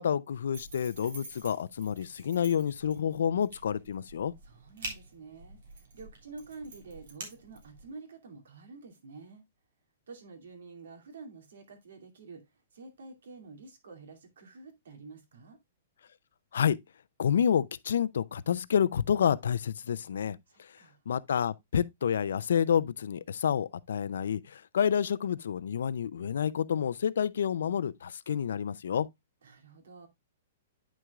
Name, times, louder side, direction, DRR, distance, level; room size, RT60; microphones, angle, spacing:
voice 1, 0.0-4.3 16.5-16.8 17.2-20.4 21.1-29.1, left 8 dB, 80° left, 0.5 m, -29 dB
sound 1, 0.5-7.9, right 3 dB, 60° right, 3.3 m, -47 dB
voice 2, 4.4-9.4 10.1-12.4 12.7-15.6 20.5-21.0 29.4-30.1, right 4 dB, 85° right, 2.5 m, -49 dB
9.5 x 6.1 x 2.4 m
hypercardioid pair, 180°, 0 cm